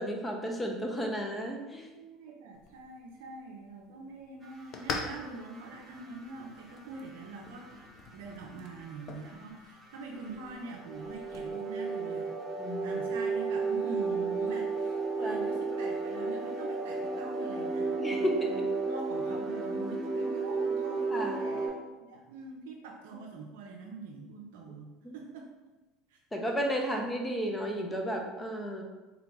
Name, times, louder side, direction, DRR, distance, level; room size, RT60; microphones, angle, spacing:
voice 1, 0.0-1.9 12.6-13.0 15.2-15.5 18.0-18.5 21.1-21.3 25.0-25.2 26.3-28.8, equal, 15° left, 2 dB, 0.8 m, -33 dB
voice 2, 1.9-7.9 8.1-12.3 12.8-25.5 26.1-26.2 26.8-26.9, right 3 dB, 75° right, 0 dB, 0.5 m, -44 dB
sound 1, 2.5-11.5, left 4 dB, 50° left, 0.6 m, -45 dB
sound 2, 4.4-21.7, right 4 dB, 10° right, 1.1 m, -33 dB
3.9 x 2.9 x 3.5 m, 1.1 s
hypercardioid pair, 85°, 0 cm